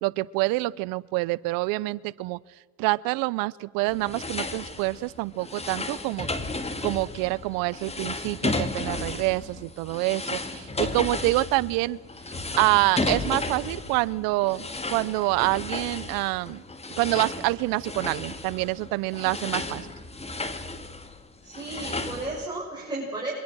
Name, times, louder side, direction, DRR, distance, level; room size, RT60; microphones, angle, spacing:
voice 1, 0.0-2.4 2.8-6.3 6.8-12.0 12.6-16.6 17.0-19.9, right 21 dB, 80° right, 21 dB, 0.7 m, -26 dB
sound 1, 3.9-22.5, left 2 dB, 20° left, 2.2 m, -33 dB
voice 2, 21.4-23.3, right 2 dB, 10° right, -4 dB, 6.9 m, -33 dB
27.5 x 24.0 x 6.3 m, 1.2 s
supercardioid pair, 90°, 34 cm